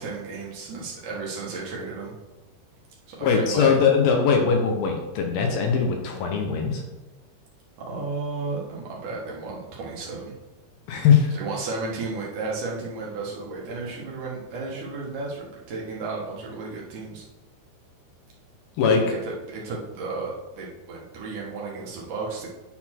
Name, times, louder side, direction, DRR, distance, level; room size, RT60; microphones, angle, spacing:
voice 1, 0.0-2.1 3.1-3.7 7.8-10.3 11.3-17.2 18.9-22.5, right 3 dB, 60° right, -4 dB, 2.4 m, -33 dB
voice 2, 3.2-6.8 10.9-11.4 18.8-19.0, left 6 dB, 75° left, 2 dB, 2.5 m, -21 dB
9.9 x 4.2 x 4.4 m, 1.0 s
omnidirectional pair, 4.7 m